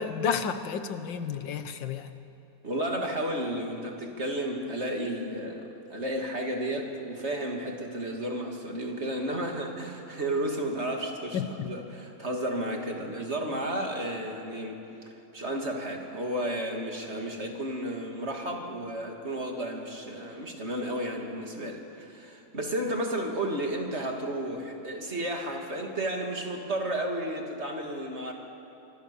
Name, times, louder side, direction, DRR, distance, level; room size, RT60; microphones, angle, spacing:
voice 1, 0.0-2.1 11.3-11.7, left 6 dB, 90° left, 10 dB, 1.9 m, -31 dB
voice 2, 2.6-14.8 15.3-28.3, right 1 dB, 35° right, 2 dB, 2.8 m, -32 dB
26.0 x 25.0 x 7.0 m, 2.9 s
omnidirectional pair, 1.9 m